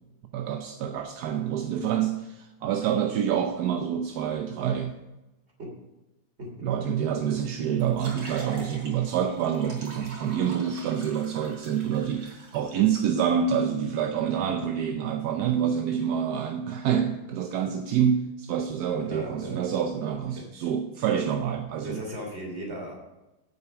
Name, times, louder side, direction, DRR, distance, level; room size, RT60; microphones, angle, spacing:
voice 1, 0.3-5.0 6.6-22.0, right 8 dB, 65° right, 5 dB, 1.1 m, -27 dB
sound 1, 7.8-12.7, right 2 dB, 85° right, 4.1 m, -44 dB
voice 2, 19.0-19.6 21.8-22.9, right 1 dB, 30° right, 0 dB, 3.3 m, -36 dB
8.9 x 7.9 x 5.8 m, 1.0 s
omnidirectional pair, 2.1 m